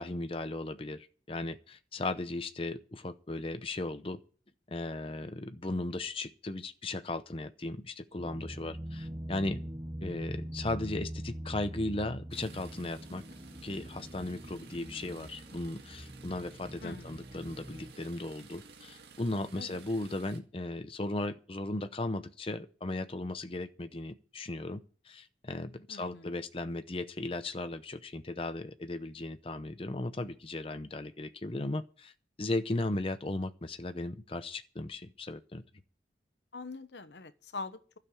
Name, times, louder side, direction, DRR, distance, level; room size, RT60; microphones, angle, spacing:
voice 1, 0.0-4.2 4.7-9.6 10.0-13.2 13.6-32.1 32.4-35.6, left 2 dB, 30° left, 0.7 m, -36 dB
sound 1, 8.2-17.9, equal, 15° right, 0.9 m, -43 dB
sound 2, 12.3-20.4, right 4 dB, 70° right, 1.8 m, -54 dB
voice 2, 25.9-26.2 36.5-38.0, left 3 dB, 85° left, 1.0 m, -43 dB
12.5 x 6.7 x 9.8 m
head